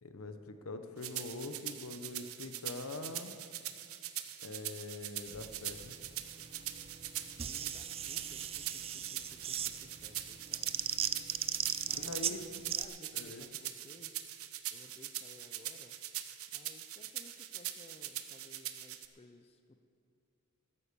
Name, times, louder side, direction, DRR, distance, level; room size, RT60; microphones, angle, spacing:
voice 1, 0.0-3.3 4.4-6.0 11.9-12.7 13.1-13.4, left 2 dB, 75° left, 9 dB, 0.9 m, -44 dB
sound 1, 1.0-19.1, right 12 dB, 75° right, 0.8 m, -43 dB
sound 2, 5.3-12.9, right 9 dB, 25° right, 0.4 m, -39 dB
voice 2, 7.3-10.9 11.8-14.2 14.7-16.0 16.5-19.8, left 2 dB, 25° left, 7 dB, 0.5 m, -58 dB
13.5 x 10.0 x 6.9 m, 2.4 s
head